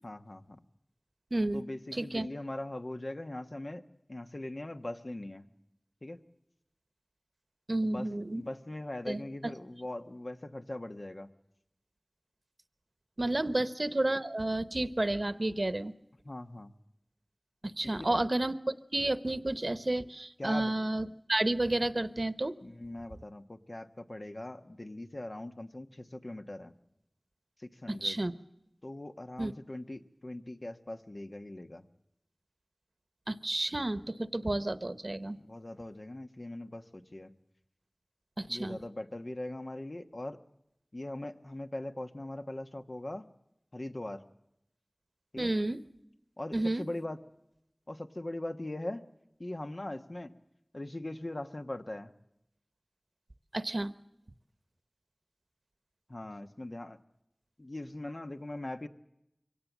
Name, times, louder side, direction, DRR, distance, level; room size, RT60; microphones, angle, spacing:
voice 1, 0.0-0.6 1.5-3.8 4.1-5.5 6.0-6.2 7.8-11.3 13.5-13.6 16.2-16.7 18.0-18.2 20.4-20.7 22.6-26.7 27.6-28.2 28.8-31.8 35.5-37.3 38.5-40.4 40.9-43.2 43.7-44.2 45.3-45.5 46.4-47.2 47.9-49.0 49.4-50.3 50.7-52.1 56.1-57.0 57.6-58.9, left 1 dB, 60° left, 7 dB, 1.3 m, -41 dB
voice 2, 1.3-1.6 1.9-2.3 7.7-8.4 9.1-9.2 13.2-15.9 17.6-22.5 27.9-28.3 29.4-29.5 33.3-35.4 38.4-38.8 45.4-45.8 46.5-46.8 53.5-53.9, right 1 dB, 60° right, 13 dB, 1.0 m, -31 dB
23.5 x 17.5 x 7.3 m, 0.81 s
wide cardioid pair, 40°, 0 cm